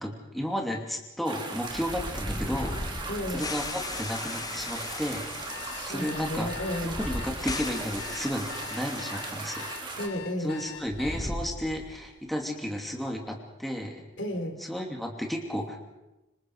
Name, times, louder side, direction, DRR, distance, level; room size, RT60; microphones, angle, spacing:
voice 1, 0.0-2.8 3.3-5.3 5.9-6.5 6.8-9.6 9.9-10.0 10.4-14.0 14.6-15.8, equal, ahead, 0 dB, 2.8 m, -33 dB
sound 1, 1.2-10.1, right 3 dB, 25° right, 3.3 m, -38 dB
sound 2, 1.6-9.8 10.0-10.1 10.8-12.1, left 2 dB, 20° left, 0.9 m, -38 dB
voice 2, 3.1-3.5 5.6-7.0 10.0-10.7 14.2-14.6, left 1 dB, 70° left, 5 dB, 3.8 m, -33 dB
sound 3, 5.5-11.2, left 8 dB, 55° left, 3.1 m, -43 dB
27.0 x 25.5 x 4.9 m, 1.0 s
head